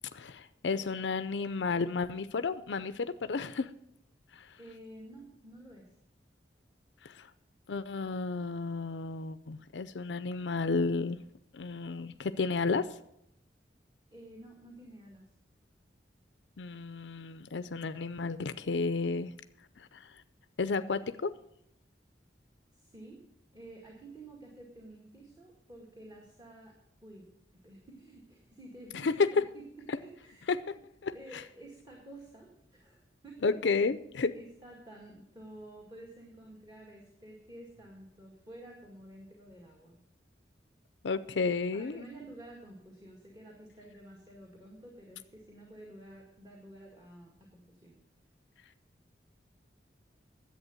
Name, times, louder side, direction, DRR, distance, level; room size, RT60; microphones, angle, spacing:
voice 1, 0.1-3.7 4.4-4.5 7.0-7.3 7.7-11.2 11.5-12.9 16.6-19.3 19.8-20.1 20.6-21.3 28.9-29.3 30.5-30.7 31.0-31.1 33.4-34.3 41.0-42.0, left 4 dB, 85° left, 13 dB, 0.5 m, -32 dB
voice 2, 4.6-6.0 14.1-15.3 22.7-23.2 23.5-27.3 27.5-30.5 31.1-33.5 34.3-40.0 41.7-48.0, right 1 dB, 25° right, -1 dB, 2.0 m, -51 dB
11.0 x 8.1 x 7.8 m, 0.77 s
head